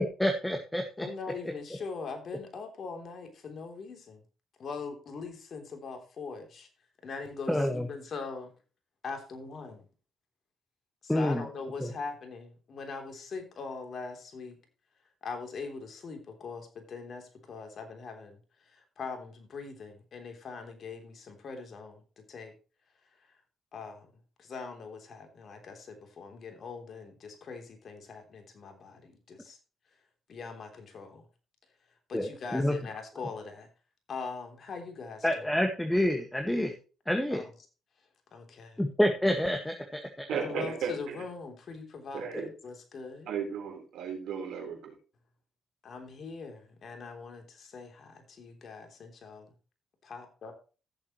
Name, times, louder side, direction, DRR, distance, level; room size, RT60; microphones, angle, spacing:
voice 1, 0.0-1.1 7.5-7.9 11.1-11.4 11.8-11.9 32.1-32.8 35.2-36.8 37.1-37.4 38.8-40.3 42.4-42.5, left 1 dB, 10° left, 4 dB, 1.7 m, -28 dB
voice 2, 1.0-4.2 4.6-6.7 7.0-8.5 9.0-9.8 11.0-14.6 15.2-18.4 18.7-22.5 23.7-24.1 24.4-29.6 30.3-31.2 32.1-33.7 34.1-35.4 37.3-37.4 38.3-38.8 40.4-43.3 45.8-49.5 50.0-50.5, left 4 dB, 55° left, 4 dB, 3.3 m, -42 dB
voice 3, 40.3-41.2 42.1-42.5 43.3-44.9, right 6 dB, 75° right, 2 dB, 4.0 m, -35 dB
15.5 x 7.4 x 3.1 m, 0.34 s
supercardioid pair, 65°, 0 cm